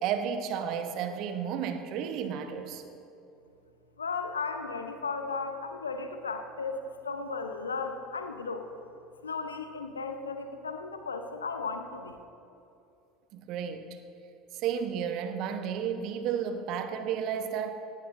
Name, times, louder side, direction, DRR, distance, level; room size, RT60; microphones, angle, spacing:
voice 1, 0.0-2.8 13.3-13.9 14.5-17.7, right 8 dB, 50° right, 7 dB, 1.1 m, -32 dB
voice 2, 4.0-8.7 9.2-12.2, left 4 dB, 80° left, 7 dB, 0.9 m, -35 dB
17.5 x 17.5 x 2.7 m, 2.8 s
figure-of-eight pair, 70°, 0 cm